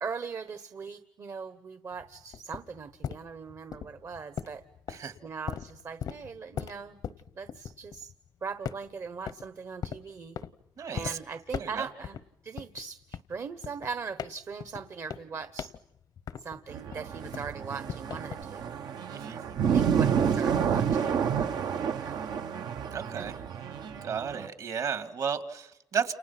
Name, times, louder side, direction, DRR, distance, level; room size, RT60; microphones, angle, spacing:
voice 1, 0.0-4.6 5.2-7.0 7.4-8.1 8.4-10.4 10.9-12.2 12.4-15.7 16.4-18.7 19.7-22.2 23.2-23.3, right 5 dB, 50° right, 10 dB, 1.1 m, -40 dB
sound 1, 1.9-8.3 8.6-9.5 9.8-10.5 11.0-11.1 11.5-12.2 12.6-16.7 16.9-18.4, left 8 dB, 70° left, 0.9 m, -39 dB
voice 2, 10.8-11.2 11.6-11.9 19.1-19.4 22.9-23.4 24.0-26.1, right 6 dB, 65° right, 9 dB, 2.5 m, -33 dB
sound 2, 16.7-24.5, right 7 dB, 85° right, 1.1 m, -29 dB
30.0 x 29.0 x 6.0 m, 0.83 s
cardioid pair, 100°, 7 cm